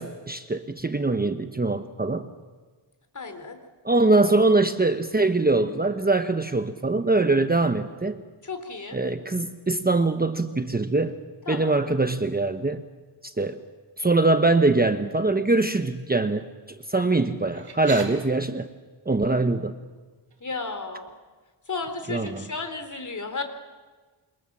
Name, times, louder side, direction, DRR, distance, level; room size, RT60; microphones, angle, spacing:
voice 1, 0.0-2.3 3.8-8.2 8.9-11.2 11.5-12.8 13.2-13.6 14.0-18.7 19.0-19.7 22.1-22.4, right 2 dB, 20° right, 8 dB, 1.1 m, -23 dB
voice 2, 3.1-3.6 8.4-9.0 11.5-11.8 16.9-17.2 20.4-21.1 21.7-23.4, left 3 dB, 40° left, 8 dB, 3.5 m, -33 dB
sound 1, 17.5-18.1 19.8-20.0 20.3-20.8 21.8-22.8, right 5 dB, 55° right, 4.4 m, -40 dB
27.5 x 25.5 x 7.4 m, 1.4 s
wide cardioid pair, 95°, 46 cm